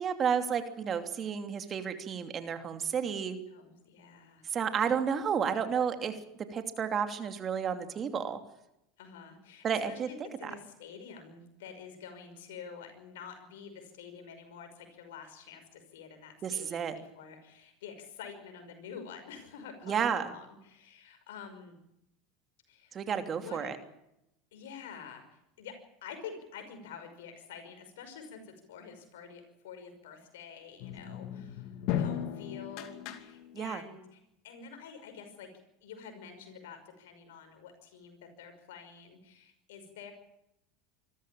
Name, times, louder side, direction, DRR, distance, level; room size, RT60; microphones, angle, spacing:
voice 1, 0.0-3.4 4.5-6.1 6.5-8.4 9.6-10.5 16.4-16.9 19.9-20.3 22.9-23.8 33.5-33.8, right 7 dB, 35° right, 7 dB, 2.8 m, -31 dB
voice 2, 3.5-4.5 9.0-21.8 22.7-22.9 23.4-23.7 24.5-35.5 35.8-40.1, left 6 dB, 80° left, 7 dB, 5.6 m, -48 dB
sound 1, 30.8-33.8, left 10 dB, 60° left, 2.6 m, -36 dB
25.5 x 14.0 x 8.8 m, 0.85 s
hypercardioid pair, 100°, 0 cm